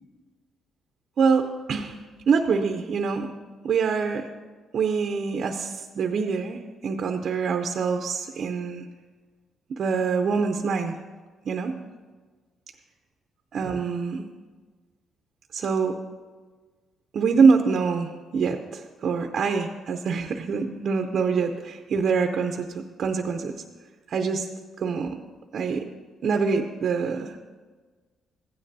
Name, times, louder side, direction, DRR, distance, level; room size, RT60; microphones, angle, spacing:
voice 1, 1.2-2.0 2.3-3.3 3.6-4.3 4.7-8.9 9.8-11.0 11.4-11.8 13.5-14.3 15.5-16.0 17.1-23.5 24.1-24.5 24.8-25.2 25.5-25.9 26.2-27.3, right 5 dB, 60° right, 5 dB, 0.6 m, -25 dB
15.5 x 9.8 x 2.7 m, 1.4 s
cardioid pair, 90°, 0 cm